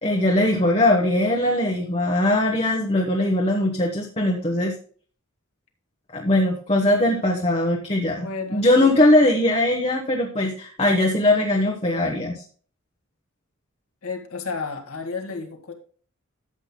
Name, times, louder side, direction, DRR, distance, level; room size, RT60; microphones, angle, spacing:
voice 1, 0.0-4.7 6.1-12.4, left 1 dB, 30° left, 0 dB, 1.0 m, -20 dB
voice 2, 8.2-9.2 14.0-15.7, left 4 dB, 80° left, 4 dB, 1.8 m, -32 dB
13.0 x 7.8 x 2.2 m, 0.43 s
head